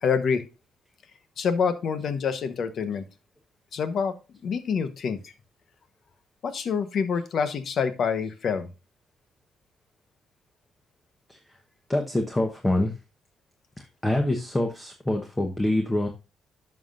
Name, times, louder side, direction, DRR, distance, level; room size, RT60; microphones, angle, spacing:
voice 1, 0.0-0.5 1.4-3.0 3.7-4.1 4.4-5.3 6.4-8.7, left 6 dB, 60° left, 11 dB, 1.0 m, -26 dB
voice 2, 11.9-12.9 13.8-16.1, left 1 dB, 15° left, 4 dB, 1.0 m, -25 dB
11.0 x 5.7 x 2.5 m, 0.28 s
cardioid pair, 90°, 0 cm